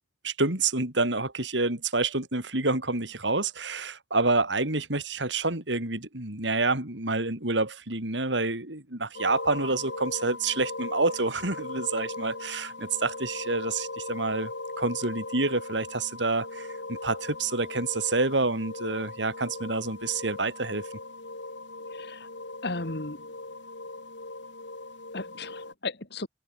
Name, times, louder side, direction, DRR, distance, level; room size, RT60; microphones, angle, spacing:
voice 1, 0.2-14.5 14.8-20.8, right 3 dB, 80° right, 4.8 m, -28 dB
sound 1, 9.1-25.7, left 2 dB, 85° left, 5.6 m, -39 dB
voice 2, 21.9-22.3 22.6-23.2 25.1-26.3, left 2 dB, 65° left, 2.8 m, -35 dB
head